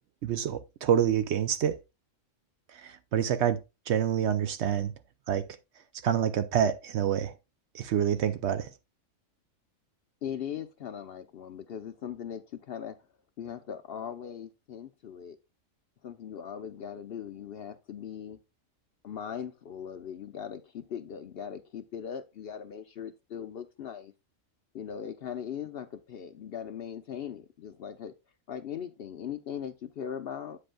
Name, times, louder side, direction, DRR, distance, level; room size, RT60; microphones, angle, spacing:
voice 1, 0.2-1.8 2.7-3.6 3.9-4.9 5.3-5.5 6.0-7.3 7.7-8.7, right 9 dB, 65° right, 0.8 m, -27 dB
voice 2, 10.2-13.0 13.4-15.4 16.0-18.4 19.0-24.1 24.7-28.1 28.5-30.6, left 8 dB, 60° left, 0.7 m, -39 dB
8.4 x 7.7 x 2.2 m
omnidirectional pair, 1.4 m